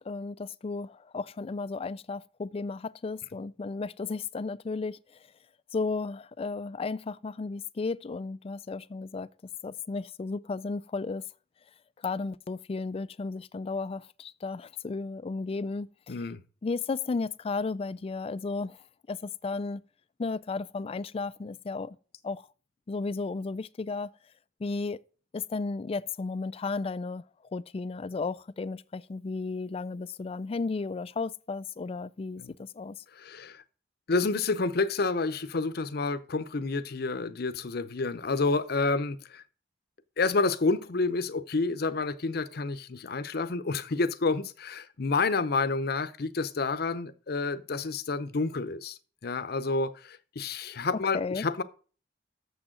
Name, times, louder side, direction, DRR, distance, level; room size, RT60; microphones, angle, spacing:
voice 1, 0.1-5.0 5.7-9.3 9.6-11.2 12.0-16.1 16.6-18.8 19.1-19.8 20.2-22.0 22.2-22.5 22.9-24.1 24.6-25.0 25.3-27.2 27.5-33.0 51.1-51.4, left 4 dB, 30° left, 0.3 m, -34 dB
voice 2, 16.1-16.4 32.4-32.5 33.2-33.6 34.1-39.4 40.2-51.6, left 3 dB, 60° left, 0.7 m, -29 dB
7.1 x 6.2 x 7.7 m
head